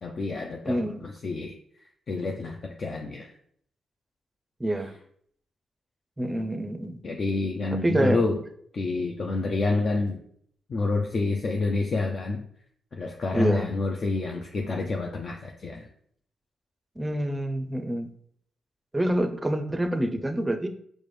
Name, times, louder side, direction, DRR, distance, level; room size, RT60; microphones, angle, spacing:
voice 1, 0.0-1.6 2.1-3.3 7.0-8.4 8.7-10.2 10.7-12.4 12.9-15.9, left 3 dB, 55° left, 1 dB, 0.4 m, -28 dB
voice 2, 0.6-1.0 4.6-4.9 6.2-7.0 7.7-8.2 13.3-13.7 17.0-18.1 18.9-20.7, right 1 dB, 20° right, 8 dB, 0.5 m, -27 dB
4.8 x 2.1 x 3.1 m, 0.64 s
cardioid pair, 60°, 0 cm